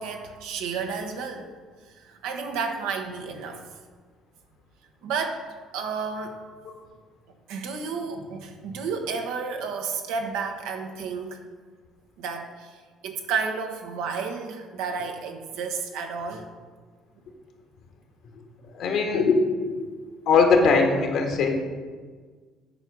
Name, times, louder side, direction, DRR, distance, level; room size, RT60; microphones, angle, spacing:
voice 1, 0.0-1.5 1.9-3.6 5.0-5.4 5.7-6.4 7.5-11.4 12.2-16.5, right 5 dB, 80° right, 4 dB, 1.0 m, -31 dB
voice 2, 18.7-19.4 20.3-21.5, left 4 dB, 70° left, 2 dB, 1.7 m, -20 dB
9.4 x 4.7 x 6.2 m, 1.5 s
supercardioid pair, 75°, 0 cm